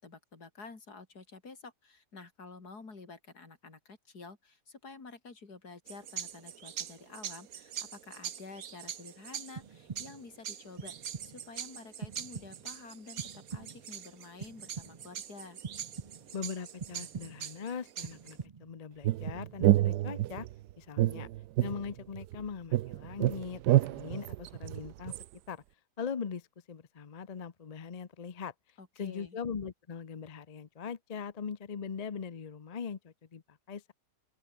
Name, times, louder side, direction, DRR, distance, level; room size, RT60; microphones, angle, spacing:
voice 1, 0.0-15.6 28.8-29.4, left 4 dB, 70° left, 3.9 m, -50 dB
sound 1, 5.9-18.4, right 9 dB, 60° right, 1.5 m, -44 dB
sound 2, 9.6-10.3 10.8-11.5 12.0-12.8 13.2-14.0 14.4-15.2 15.6-16.4 16.8-17.6 18.0-18.8 19.2-20.1, right 5 dB, 40° right, 0.5 m, -45 dB
voice 2, 16.3-20.5 20.8-21.3 21.6-25.1 25.5-25.6 26.0-28.5 29.0-33.9, left 6 dB, 40° left, 0.6 m, -41 dB
sound 3, 19.0-20.5 21.0-22.4 22.7-25.2, right 14 dB, 80° right, 1.2 m, -28 dB
open air
omnidirectional pair, 1.8 m